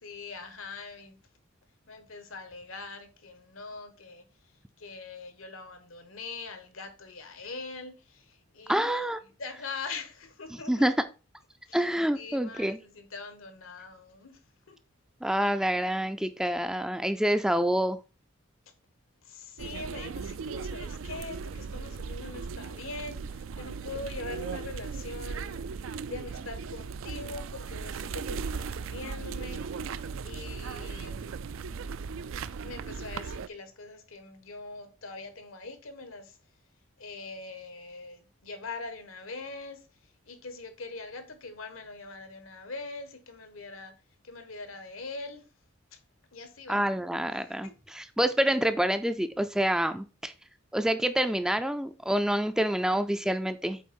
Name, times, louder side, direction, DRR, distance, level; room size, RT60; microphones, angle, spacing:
voice 1, 0.0-1.2 1.9-4.3 4.8-8.9 9.4-10.9 11.6-11.9 12.1-14.8 19.2-31.3 32.6-36.4 37.0-43.9 44.2-45.5 45.9-46.0 46.3-46.9 47.3-47.7, left 3 dB, 85° left, 1.4 m, -43 dB
voice 2, 8.7-9.2 10.7-10.9 11.7-12.8 15.2-18.0 46.7-50.3 50.7-53.8, right 1 dB, 5° right, 0.3 m, -27 dB
sound 1, 19.6-33.5, right 5 dB, 75° right, 0.4 m, -37 dB
8.3 x 3.8 x 4.3 m
head